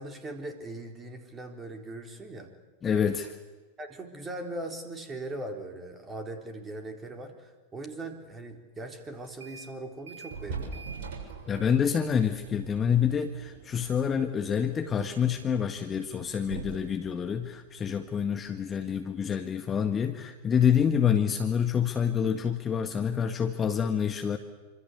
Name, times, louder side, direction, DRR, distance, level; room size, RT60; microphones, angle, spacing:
voice 1, 0.0-2.5 3.8-10.8, right 2 dB, 15° right, 5 dB, 4.1 m, -40 dB
voice 2, 2.8-3.3 11.5-24.4, left 7 dB, 20° left, 6 dB, 1.7 m, -27 dB
sound 1, 9.2-9.7 10.1-18.5, right 4 dB, 55° right, 7.3 m, -44 dB
27.0 x 26.0 x 8.3 m, 1.3 s
figure-of-eight pair, 90°, 0 cm